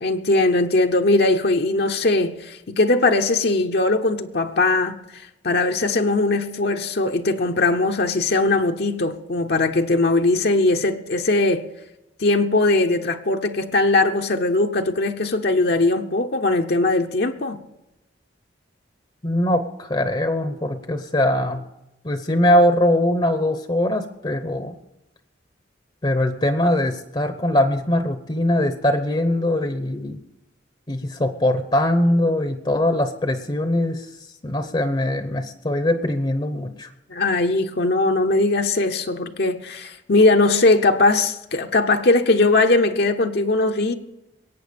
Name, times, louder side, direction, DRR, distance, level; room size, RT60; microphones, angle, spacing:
voice 1, 0.0-11.7 12.2-17.6 37.1-43.9, left 2 dB, 60° left, 0.8 m, -20 dB
voice 2, 19.2-21.6 22.0-24.8 26.0-30.2 30.9-34.1 34.4-36.9, left 1 dB, 25° left, 0.8 m, -21 dB
21.5 x 9.0 x 5.2 m
head